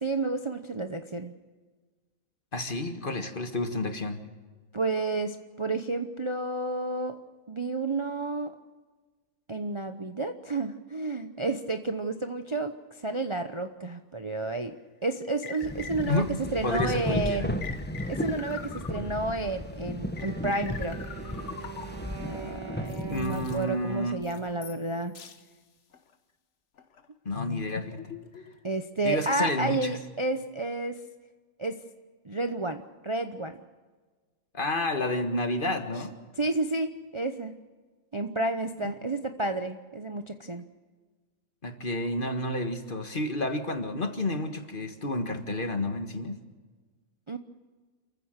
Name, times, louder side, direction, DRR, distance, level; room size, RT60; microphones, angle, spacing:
voice 1, 0.0-1.3 4.7-7.2 7.5-8.5 9.5-14.7 15.0-16.2 16.5-17.5 18.1-21.0 22.2-25.1 28.6-31.0 31.6-31.8 32.2-33.6 36.4-37.6 38.1-40.6 47.3-47.4, right 2 dB, 25° right, 7 dB, 0.7 m, -31 dB
voice 2, 2.5-4.3 16.1-17.5 23.1-24.2 27.3-28.0 29.0-29.9 34.5-36.1 41.6-46.4, left 1 dB, 40° left, 6 dB, 1.8 m, -30 dB
sound 1, 14.4-14.5 15.4-16.5 17.6-19.4 20.2-22.2 22.8-23.6 24.2-24.9 25.1-25.4 25.9-26.1 26.8-28.7, left 7 dB, 60° left, 1.4 m, -42 dB
sound 2, 15.6-24.4, left 1 dB, 10° left, 1.1 m, -35 dB
Wind instrument woodwind instrument, 20.1-25.2, right 7 dB, 70° right, 2.3 m, -44 dB
28.5 x 15.0 x 6.6 m, 1.4 s
omnidirectional pair, 1.4 m